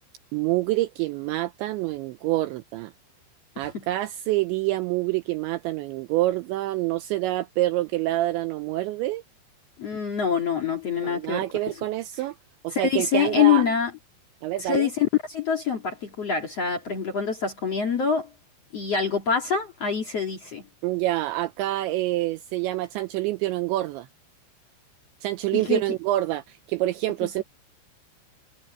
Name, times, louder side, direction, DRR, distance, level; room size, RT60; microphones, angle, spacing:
voice 1, 0.3-2.9 3.6-9.2 11.0-12.4 12.6-13.6 14.4-14.9 20.8-24.1 25.2-27.4, right 16 dB, 85° right, 2.6 m, -27 dB
voice 2, 9.8-11.4 12.7-13.9 14.6-18.3 18.7-20.6 25.5-25.8, left 7 dB, 45° left, 2.2 m, -25 dB
omnidirectional pair, 5.9 m